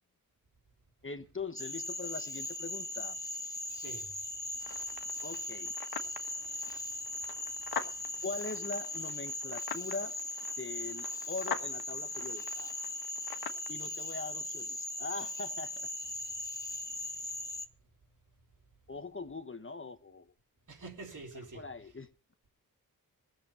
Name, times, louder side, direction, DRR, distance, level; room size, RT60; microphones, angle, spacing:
voice 1, 1.0-3.2 5.2-5.7 8.2-10.1 10.6-12.7 13.7-15.9 18.9-20.3 21.5-22.1, left 3 dB, 35° left, 1.3 m, -41 dB
Cricket / Frog, 1.6-17.7, left 1 dB, 10° left, 1.5 m, -39 dB
voice 2, 3.7-4.1 20.7-21.9, right 3 dB, 55° right, 3.3 m, -47 dB
sound 1, 4.6-13.7, left 6 dB, 90° left, 1.6 m, -44 dB
18.0 x 7.7 x 6.9 m
wide cardioid pair, 75°, 36 cm